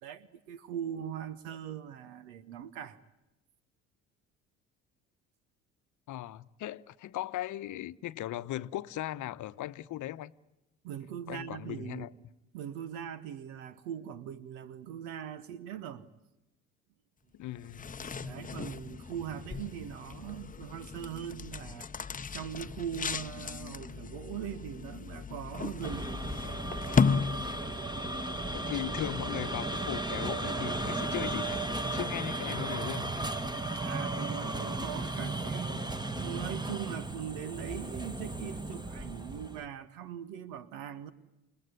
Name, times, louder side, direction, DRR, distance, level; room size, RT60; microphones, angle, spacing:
voice 1, 0.0-3.0 10.8-12.1 12.5-16.1 18.0-21.9 22.3-26.3 33.7-41.1, right 9 dB, 70° right, 1.4 m, -41 dB
voice 2, 6.1-10.3 11.3-12.1 17.4-17.9 28.5-33.1, left 14 dB, 50° left, 1.0 m, -38 dB
sound 1, 17.6-27.9, left 5 dB, 20° left, 0.9 m, -35 dB
sound 2, 25.8-39.7, right 2 dB, 10° right, 1.8 m, -35 dB
29.0 x 20.0 x 9.7 m
hypercardioid pair, 55°, 38 cm